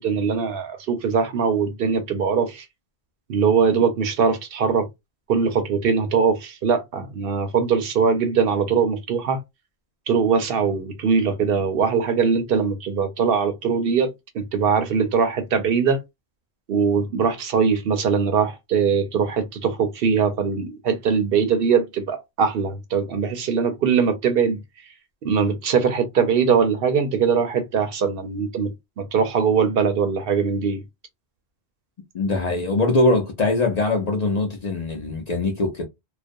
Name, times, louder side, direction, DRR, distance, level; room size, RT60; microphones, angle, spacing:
voice 1, 0.0-2.6 3.3-4.9 5.3-9.4 10.1-16.0 16.7-24.6 25.2-28.7 29.0-30.8, right 6 dB, 65° right, 0.7 m, -21 dB
voice 2, 32.1-35.9, left 2 dB, 50° left, 0.6 m, -22 dB
2.4 x 2.1 x 2.5 m
omnidirectional pair, 1.1 m